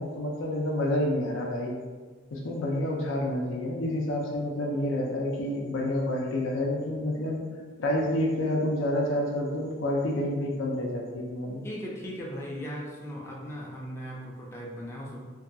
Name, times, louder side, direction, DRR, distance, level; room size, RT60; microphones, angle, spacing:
voice 1, 0.0-1.8 2.3-7.4 7.8-11.6, left 1 dB, 80° left, -1 dB, 0.5 m, -29 dB
voice 2, 11.6-15.2, equal, 15° left, -4 dB, 0.4 m, -38 dB
2.6 x 2.3 x 2.6 m, 1.4 s
head